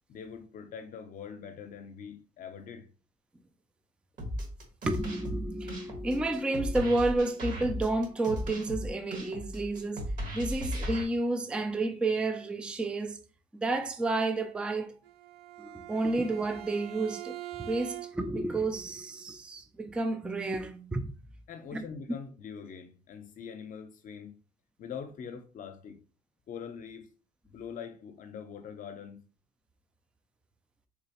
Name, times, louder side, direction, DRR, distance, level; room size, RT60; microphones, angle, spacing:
voice 1, 0.1-2.9 21.5-24.4 24.8-26.0 26.5-27.1 27.5-29.2, left 7 dB, 50° left, 0.6 m, -43 dB
sound 1, 4.2-11.0, equal, 50° right, 1.3 m, -36 dB
voice 2, 4.9-13.2 13.5-14.9 15.6-21.1 21.7-21.9, right 2 dB, 5° right, 0.3 m, -31 dB
Bowed string instrument, 15.0-18.4, right 16 dB, 90° right, 0.5 m, -43 dB
3.7 x 3.0 x 2.9 m
cardioid pair, 110°, 17 cm